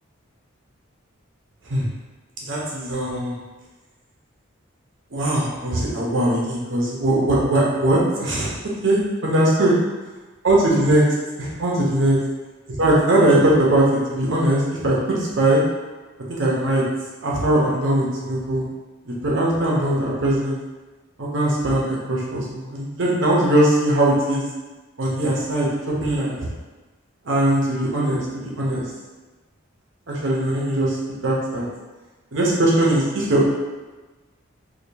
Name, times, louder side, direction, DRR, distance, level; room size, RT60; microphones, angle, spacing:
voice 1, 2.5-3.4 5.1-8.5 8.8-9.7 10.4-11.0 11.4-12.2 12.8-15.6 16.3-16.8 17.2-18.6 19.0-20.6 21.2-24.4 25.0-25.7 26.0-26.4 27.2-28.8 30.1-31.0 31.2-31.7 32.3-33.5, right 1 dB, 65° right, -4 dB, 0.7 m, -20 dB
4.9 x 2.2 x 2.7 m, 1.2 s
head